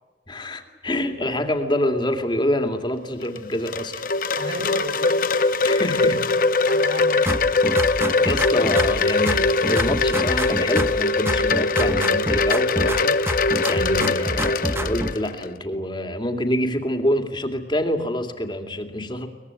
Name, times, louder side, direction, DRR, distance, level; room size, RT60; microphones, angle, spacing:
voice 1, 0.3-4.0 5.6-6.2 7.1-7.2 8.2-13.1 13.4-19.3, left 1 dB, 25° left, 6 dB, 2.4 m, -26 dB
Wind chime, 3.2-15.5, left 3 dB, 50° left, 0.9 m, -21 dB
voice 2, 4.3-5.6 6.7-7.5 8.1-8.3, right 2 dB, 80° right, 4 dB, 4.6 m, -35 dB
sound 1, 7.3-9.0 9.3-11.0 11.3-13.0 13.3-15.1, right 1 dB, 15° right, 1.2 m, -27 dB
23.0 x 21.0 x 9.7 m, 1.2 s
head